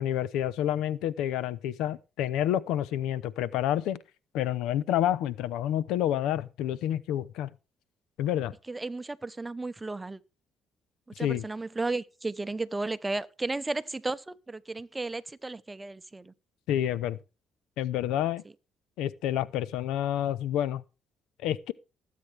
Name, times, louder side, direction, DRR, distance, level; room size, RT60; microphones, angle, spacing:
voice 1, 0.0-4.0 4.3-7.5 8.2-8.5 11.2-11.4 16.7-17.2 17.8-18.4 19.0-20.8 21.4-21.7, left 11 dB, 85° left, 0.7 m, -29 dB
voice 2, 8.7-10.2 11.2-16.3, right 3 dB, 15° right, 0.8 m, -34 dB
20.0 x 8.4 x 3.4 m
cardioid pair, 85°, 0 cm